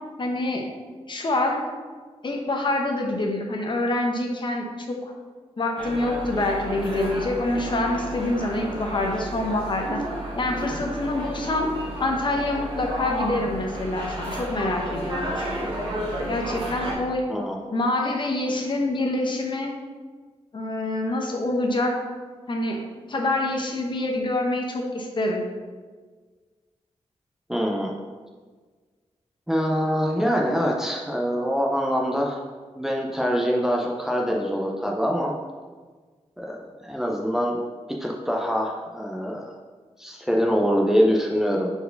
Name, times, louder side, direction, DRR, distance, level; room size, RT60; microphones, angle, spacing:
voice 1, 0.2-0.7 1.1-1.6 2.2-5.1 5.6-10.0 10.3-11.7 12.0-15.7 16.3-17.2 17.7-19.7 20.5-22.0 22.5-22.8 23.1-25.4, left 2 dB, 45° left, 2 dB, 0.9 m, -26 dB
sound 1, 5.8-16.9, right 1 dB, 45° right, 1.5 m, -32 dB
voice 2, 27.5-27.9 29.5-32.4 32.8-35.3 36.4-37.6 38.0-39.5 40.0-41.7, equal, 5° right, -1 dB, 0.5 m, -24 dB
4.5 x 4.4 x 5.1 m, 1.5 s
wide cardioid pair, 150°, 12 cm